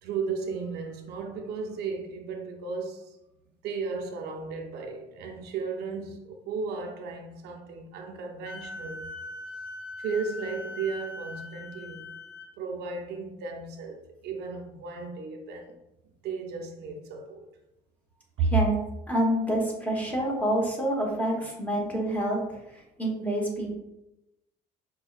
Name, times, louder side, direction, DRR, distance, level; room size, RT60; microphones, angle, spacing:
voice 1, 0.0-3.2 3.6-9.1 10.0-12.1 12.6-15.8 16.2-17.5 18.4-18.5, right 5 dB, 80° right, 0.5 m, -34 dB
Wind instrument woodwind instrument, 8.5-12.5, left 2 dB, 80° left, 0.5 m, -40 dB
voice 2, 18.4-18.7 19.1-22.4 22.7-23.7, right 1 dB, 10° left, 1.0 m, -27 dB
5.2 x 2.2 x 2.3 m
cardioid pair, 110°, 17 cm